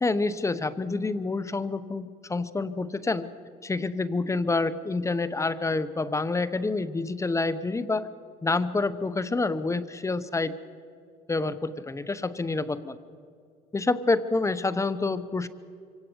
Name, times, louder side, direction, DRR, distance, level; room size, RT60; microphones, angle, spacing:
voice 1, 0.0-3.3 3.6-8.1 8.4-10.6 11.3-13.0 13.7-15.5, left 3 dB, 15° left, 14 dB, 0.9 m, -27 dB
24.5 x 17.0 x 8.0 m, 2.3 s
cardioid pair, 110°, 17 cm